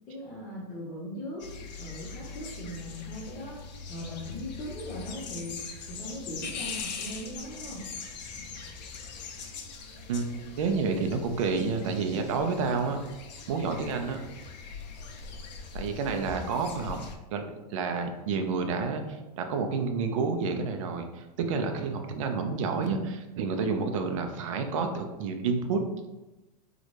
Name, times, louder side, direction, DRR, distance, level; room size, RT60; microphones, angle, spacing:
voice 1, 0.1-1.5 1.8-3.6 3.9-5.6 5.9-7.9, equal, 20° left, -8 dB, 0.6 m, -39 dB
sound 1, 1.4-17.1, left 5 dB, 85° left, 0.6 m, -41 dB
voice 2, 10.6-13.0 13.5-14.2 15.7-17.0 17.3-19.0 19.4-25.8, right 4 dB, 50° right, 5 dB, 0.4 m, -29 dB
3.7 x 2.1 x 3.1 m, 1.0 s
supercardioid pair, 170°, 21 cm